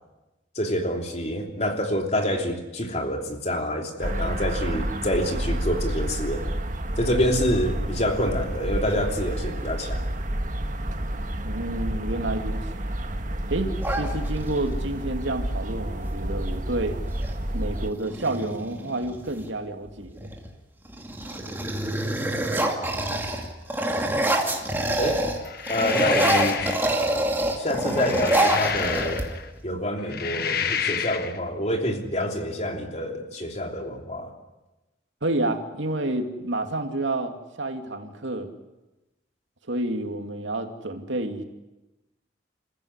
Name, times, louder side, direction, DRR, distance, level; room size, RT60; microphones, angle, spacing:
voice 1, 0.5-6.5 7.0-10.0 25.0-25.2 25.7-26.7 27.6-29.2 29.6-34.3, equal, 35° left, 3 dB, 3.2 m, -27 dB
sound 1, 4.0-17.9, right 1 dB, 45° right, 1.6 m, -29 dB
voice 2, 11.4-12.6 13.5-17.0 17.5-20.3 35.2-38.5 39.7-41.4, right 2 dB, 85° right, 5 dB, 2.6 m, -29 dB
sound 2, 13.8-14.7 16.4-16.6 16.9-17.4 17.9-19.5 20.1-20.5 20.8-25.4 25.7-29.6, right 1 dB, 10° right, 2.5 m, -26 dB
sound 3, 25.5-26.9 27.8-29.5 30.0-31.4, left 7 dB, 55° left, 1.3 m, -29 dB
28.0 x 15.0 x 9.8 m, 1.0 s
head